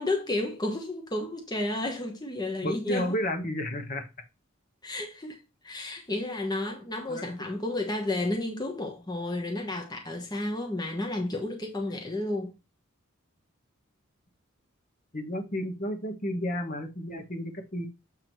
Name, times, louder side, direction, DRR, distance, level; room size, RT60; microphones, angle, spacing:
voice 1, 0.0-3.2 4.8-5.4 5.6-12.5, left 2 dB, 20° left, 1.1 m, -32 dB
voice 2, 2.6-4.1 7.1-7.3 15.1-17.9, equal, 40° left, 1.2 m, -32 dB
7.6 x 3.7 x 4.6 m
head